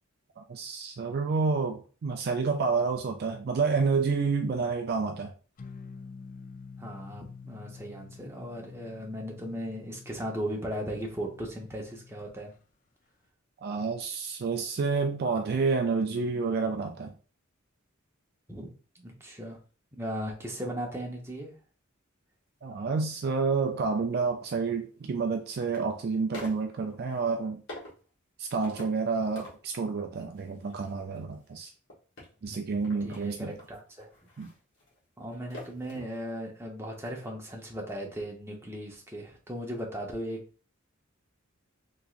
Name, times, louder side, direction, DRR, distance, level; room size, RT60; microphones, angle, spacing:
voice 1, 0.4-5.3 13.6-17.1 22.6-27.6 28.4-31.7 32.4-33.6 34.4-34.5, right 4 dB, 50° right, 0.4 m, -29 dB
sound 1, 5.6-12.4, left 5 dB, 40° left, 0.4 m, -48 dB
voice 2, 6.8-12.5 18.5-18.7 18.9-19.6 19.9-21.5 32.4-32.7 33.0-34.1 35.2-40.4, equal, 10° right, 0.8 m, -37 dB
sound 2, 23.4-23.5 24.9-25.8 26.3-27.2 27.7-28.1 28.6-29.1 29.4-29.9 30.3-36.2 36.5-36.6, left 1 dB, 65° left, 1.5 m, -47 dB
3.5 x 2.9 x 2.4 m
head